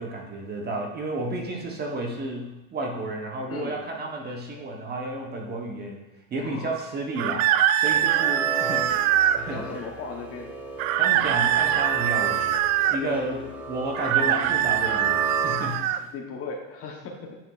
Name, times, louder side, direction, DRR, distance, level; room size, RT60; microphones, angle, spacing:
voice 1, 0.0-6.0 6.3-7.5 7.7-8.9 9.4-9.6 11.0-12.6 12.9-15.9, right 2 dB, 25° right, 1 dB, 0.9 m, -32 dB
voice 2, 3.5-3.9 6.4-6.7 9.5-10.5 13.0-13.4 16.1-17.4, left 4 dB, 35° left, 2 dB, 0.9 m, -37 dB
sound 1, 7.2-9.4 10.8-13.0 13.9-16.0, right 11 dB, 80° right, 0.5 m, -23 dB
sound 2, 7.8-16.0, right 2 dB, 5° right, 0.4 m, -35 dB
9.0 x 5.0 x 2.3 m, 0.96 s
supercardioid pair, 140°, 40 cm